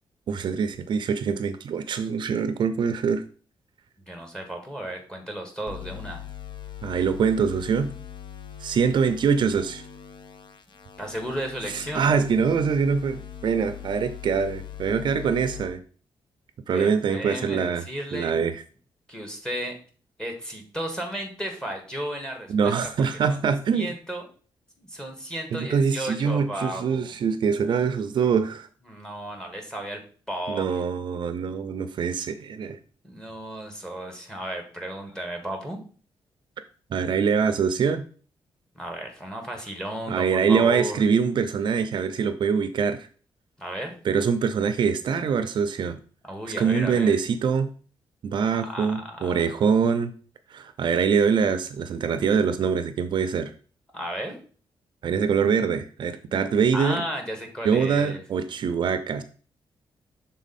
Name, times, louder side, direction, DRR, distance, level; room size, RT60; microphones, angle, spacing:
voice 1, 0.3-3.2 6.8-7.9 8.6-9.8 11.7-15.8 16.7-17.8 18.1-18.6 22.5-23.9 25.5-28.7 30.5-32.8 36.9-38.1 40.1-43.1 44.0-46.0 46.6-47.7 48.2-50.1 50.5-53.5 55.0-57.0 57.6-59.2, right 6 dB, 60° right, 10 dB, 0.5 m, -24 dB
voice 2, 4.1-6.2 11.0-12.1 16.7-18.4 19.1-19.8 20.2-22.7 23.3-23.4 23.7-24.3 24.8-27.1 28.9-30.0 30.3-30.7 33.0-35.8 38.7-41.0 43.6-43.9 46.2-47.2 48.5-49.3 53.9-54.4 56.7-58.2, right 1 dB, 10° left, 2 dB, 1.4 m, -34 dB
sound 1, 5.7-15.7, left 9 dB, 65° left, 0.7 m, -41 dB
6.2 x 3.8 x 4.1 m, 0.41 s
wide cardioid pair, 135°, 9 cm